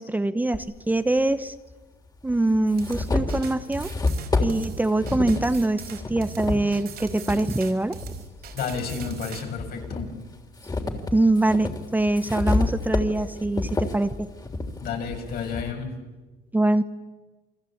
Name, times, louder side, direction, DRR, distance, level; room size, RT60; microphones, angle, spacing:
voice 1, 0.0-1.5 2.2-3.9 4.4-8.0 11.1-14.3 16.5-16.8, right 2 dB, 10° right, 11 dB, 1.0 m, -23 dB
sound 1, 0.5-0.6 1.7-1.8 2.3-7.4 7.9-9.1 9.6-15.7, left 3 dB, 25° left, 3.4 m, -29 dB
sound 2, 2.8-9.4, right 9 dB, 70° right, 5.0 m, -40 dB
voice 2, 8.5-10.2 14.8-15.9, left 6 dB, 65° left, 3 dB, 7.1 m, -31 dB
29.5 x 23.0 x 8.7 m, 1.2 s
cardioid pair, 110°, 17 cm